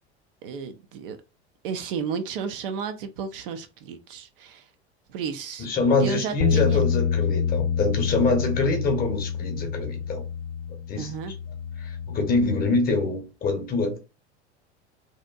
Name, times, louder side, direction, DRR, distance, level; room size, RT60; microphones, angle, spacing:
voice 1, 0.4-1.2 1.6-4.7 5.1-5.7 6.0-6.8 11.0-11.3, right 6 dB, 55° right, 0.5 m, -33 dB
voice 2, 5.6-10.2 10.9-11.1 11.8-14.0, left 3 dB, 25° left, 0.8 m, -25 dB
sound 1, 6.4-12.7, left 7 dB, 65° left, 0.5 m, -27 dB
2.7 x 2.4 x 2.2 m
figure-of-eight pair, 75°, 34 cm